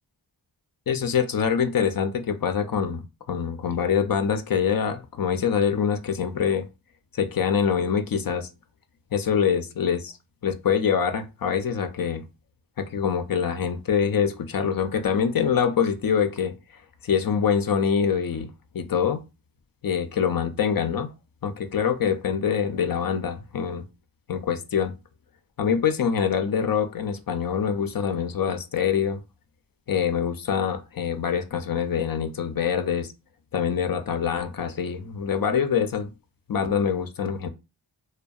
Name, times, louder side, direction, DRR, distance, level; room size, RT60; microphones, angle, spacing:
voice 1, 0.9-6.7 7.1-8.5 9.1-10.2 10.4-12.2 12.8-16.5 17.0-19.2 19.8-21.1 21.4-23.8 24.3-24.9 25.6-29.2 29.9-33.1 33.5-36.1 36.5-37.5, left 7 dB, 50° left, 0.4 m, -25 dB
2.6 x 2.2 x 2.3 m
cardioid pair, 40°, 47 cm